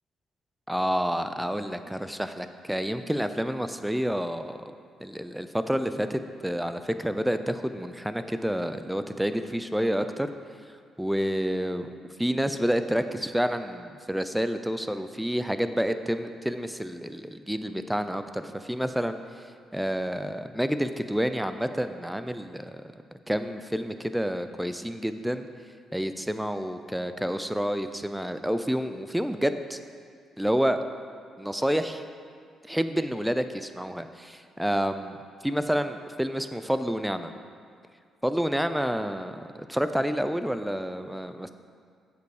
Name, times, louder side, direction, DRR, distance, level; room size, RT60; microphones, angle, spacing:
voice 1, 0.7-4.6 5.0-10.3 11.0-11.9 12.2-22.8 23.3-25.5 25.9-29.8 30.4-30.8 31.4-32.0 32.7-35.2 35.4-37.3 38.2-41.5, equal, 5° right, 9 dB, 0.4 m, -29 dB
8.0 x 6.9 x 4.9 m, 2.1 s
cardioid pair, 90°, 0 cm